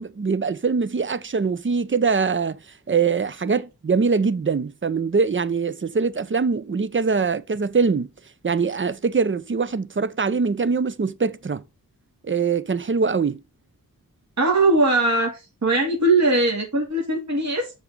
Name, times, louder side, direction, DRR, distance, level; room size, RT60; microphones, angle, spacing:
voice 1, 0.0-2.6 2.9-8.1 8.4-11.6 12.2-13.4, right 5 dB, 35° right, 0.7 m, -23 dB
voice 2, 14.4-17.7, right 2 dB, 50° right, 2.5 m, -20 dB
6.8 x 4.0 x 6.0 m
cardioid pair, 55°, 34 cm